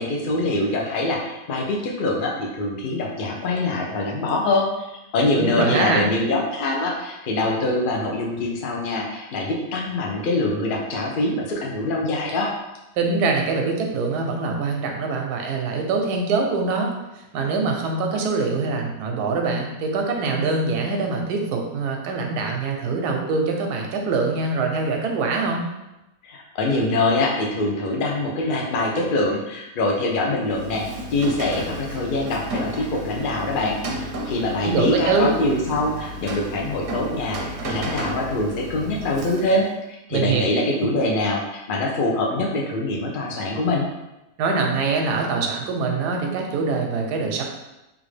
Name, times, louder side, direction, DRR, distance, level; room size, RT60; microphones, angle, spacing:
voice 1, 0.0-4.7 5.1-12.5 26.2-30.8 31.1-43.9, left 2 dB, 65° left, -1 dB, 0.5 m, -24 dB
voice 2, 5.4-6.0 13.0-16.9 17.3-25.7 34.6-35.3 40.1-40.4 44.4-47.4, right 4 dB, 90° right, 2 dB, 1.2 m, -23 dB
Rain, 30.4-39.7, right 1 dB, 65° right, 0.8 m, -33 dB
3.4 x 2.5 x 3.2 m, 0.95 s
omnidirectional pair, 1.7 m